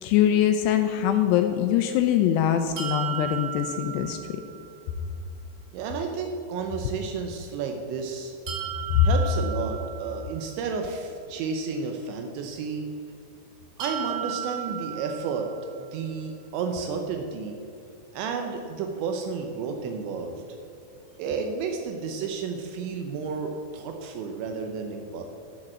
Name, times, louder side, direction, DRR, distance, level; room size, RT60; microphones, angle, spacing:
voice 1, 0.0-4.2 9.0-9.1, left 11 dB, 80° left, 7 dB, 2.5 m, -22 dB
sound 1, 2.8-4.7 8.5-10.5 13.8-15.8, right 10 dB, 65° right, 2.3 m, -35 dB
voice 2, 5.7-8.3 9.0-12.9 13.8-15.5 15.8-17.6 18.1-20.4 21.2-25.2, right 5 dB, 80° right, 4 dB, 3.0 m, -31 dB
10.5 x 6.7 x 7.4 m, 2.6 s
omnidirectional pair, 5.2 m